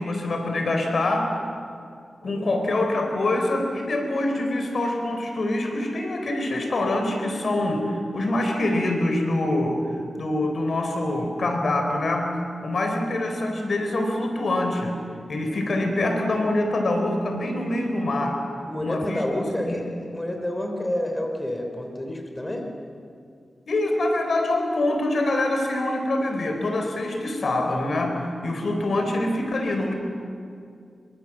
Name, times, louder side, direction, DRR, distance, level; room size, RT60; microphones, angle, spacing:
voice 1, 0.0-1.4 2.2-9.8 10.1-15.0 15.3-18.4 18.8-19.2 19.6-19.8 23.7-29.9, left 1 dB, 65° left, 3 dB, 4.0 m, -25 dB
voice 2, 2.2-2.6 18.6-22.6, left 1 dB, 15° left, 3 dB, 3.5 m, -29 dB
26.0 x 24.0 x 7.4 m, 2.4 s
wide cardioid pair, 95°, 0 cm